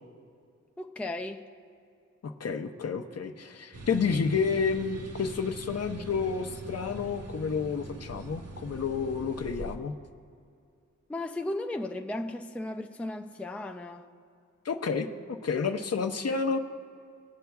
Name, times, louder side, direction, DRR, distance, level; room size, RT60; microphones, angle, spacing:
voice 1, 0.8-1.4 11.1-14.1, left 1 dB, 5° left, 4 dB, 0.5 m, -35 dB
voice 2, 2.2-9.9 14.6-15.1 15.4-16.6, left 5 dB, 55° left, 5 dB, 0.8 m, -30 dB
sound 1, 3.7-9.8, right 2 dB, 55° right, 1.1 m, -43 dB
21.0 x 8.2 x 2.3 m, 2.4 s
wide cardioid pair, 75°, 30 cm